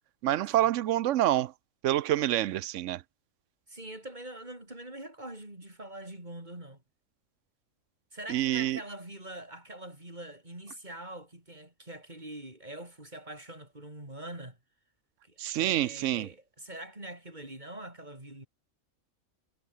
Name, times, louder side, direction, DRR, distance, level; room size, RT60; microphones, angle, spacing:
voice 1, 0.2-1.5 1.8-3.0 8.3-8.8 15.4-16.3, right 13 dB, 70° right, 0.8 m, -27 dB
voice 2, 3.7-6.8 8.1-14.6 15.2-18.5, right 1 dB, 30° right, 6.0 m, -44 dB
omnidirectional pair, 1.5 m